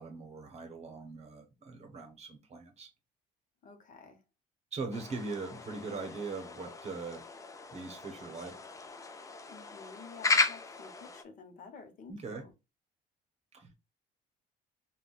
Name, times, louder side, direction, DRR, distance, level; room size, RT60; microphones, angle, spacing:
voice 1, 0.0-2.9 4.7-7.2 7.7-8.6 12.1-12.4 13.5-13.7, right 4 dB, 40° right, 0.9 m, -41 dB
voice 2, 3.6-4.2 9.5-12.5, left 4 dB, 50° left, 0.9 m, -51 dB
sound 1, 4.9-11.2, left 4 dB, 20° left, 0.4 m, -35 dB
3.6 x 2.3 x 2.4 m
cardioid pair, 110°, 17 cm